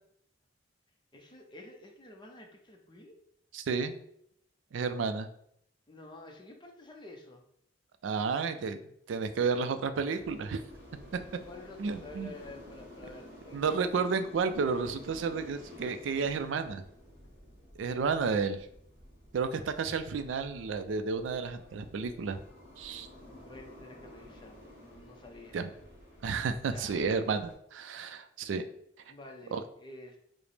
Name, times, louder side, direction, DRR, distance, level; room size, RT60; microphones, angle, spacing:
voice 1, 1.1-3.2 5.9-7.4 11.5-13.7 23.2-25.6 26.6-27.0 29.1-30.2, left 2 dB, 25° left, 1 dB, 0.6 m, -50 dB
voice 2, 3.5-3.9 4.7-5.3 8.0-8.8 9.1-10.6 11.8-12.3 13.5-16.8 17.8-18.7 19.3-22.4 22.8-23.1 25.5-25.7 26.2-28.6 29.5-29.6, right 5 dB, 85° right, 9 dB, 0.4 m, -31 dB
sound 1, 10.1-27.5, left 1 dB, 10° right, 0.9 m, -52 dB
4.9 x 2.1 x 3.2 m, 0.70 s
head